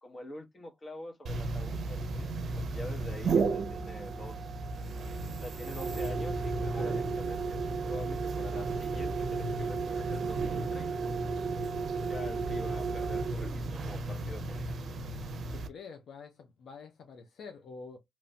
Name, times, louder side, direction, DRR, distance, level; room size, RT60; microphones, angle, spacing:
voice 1, 0.0-4.5 5.4-11.1 12.1-14.6, left 1 dB, 35° left, 0.9 m, -46 dB
sound 1, 1.3-15.7, right 3 dB, 65° right, 0.5 m, -33 dB
voice 2, 15.5-18.0, left 5 dB, 80° left, 0.5 m, -47 dB
3.0 x 2.1 x 2.6 m
cardioid pair, 75°, 0 cm